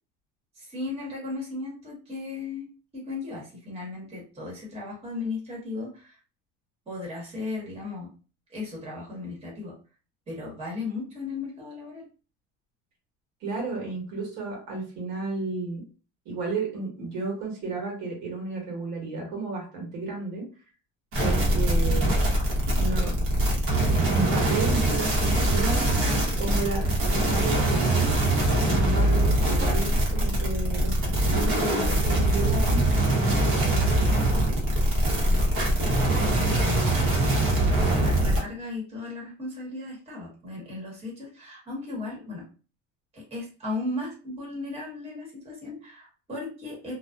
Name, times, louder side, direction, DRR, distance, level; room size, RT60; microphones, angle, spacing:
voice 1, 0.5-6.2 6.9-8.1 8.5-9.7 10.3-12.1 28.6-28.8 35.2-35.4 36.3-37.0 37.7-42.4 43.1-47.0, left 3 dB, 20° right, -4 dB, 1.1 m, -36 dB
voice 2, 13.4-15.8 16.2-20.5 21.2-22.2 22.7-23.1 23.8-25.9 26.4-28.1 28.6-33.4 33.7-34.0, right 3 dB, 70° right, -1 dB, 1.4 m, -33 dB
sound 1, 21.1-38.4, right 1 dB, 45° right, 1.0 m, -23 dB
2.5 x 2.2 x 2.2 m, 0.36 s
cardioid pair, 140°, 30 cm